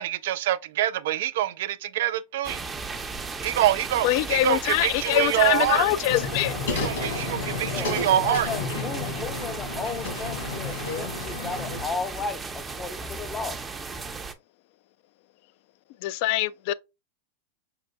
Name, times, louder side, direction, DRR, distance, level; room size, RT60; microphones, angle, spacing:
voice 1, 0.0-2.6 3.4-5.9 6.8-8.5, right 13 dB, 70° right, 0.3 m, -25 dB
sound 1, 2.4-14.3, right 4 dB, 20° right, 0.6 m, -36 dB
voice 2, 4.0-6.6 16.0-16.7, left 15 dB, 60° left, 0.3 m, -24 dB
sound 2, 6.1-11.8, left 3 dB, 80° left, 1.8 m, -32 dB
voice 3, 8.2-13.6, left 4 dB, 20° left, 0.6 m, -34 dB
5.5 x 2.5 x 2.3 m
hypercardioid pair, 115°, 0 cm